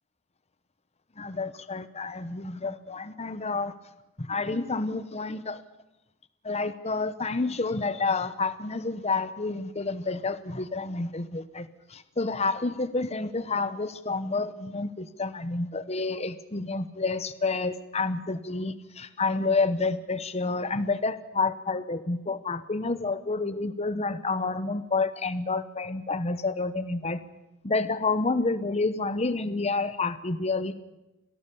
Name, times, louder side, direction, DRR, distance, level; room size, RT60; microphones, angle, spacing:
voice 1, 1.2-3.7 4.2-5.6 6.4-27.2 27.6-30.8, left 3 dB, 30° left, 13 dB, 1.0 m, -29 dB
27.0 x 18.0 x 7.0 m, 0.95 s
head